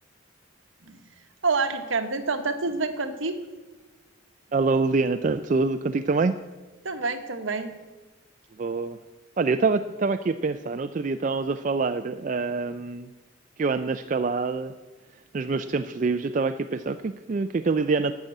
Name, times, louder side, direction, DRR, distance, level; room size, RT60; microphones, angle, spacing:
voice 1, 1.4-3.4 6.8-7.8, right 4 dB, 70° right, 8 dB, 1.1 m, -27 dB
voice 2, 4.5-6.3 8.6-9.0 9.4-13.1 13.6-14.7 15.3-18.1, right 4 dB, 40° right, 9 dB, 0.3 m, -25 dB
12.0 x 7.3 x 7.8 m, 1.2 s
head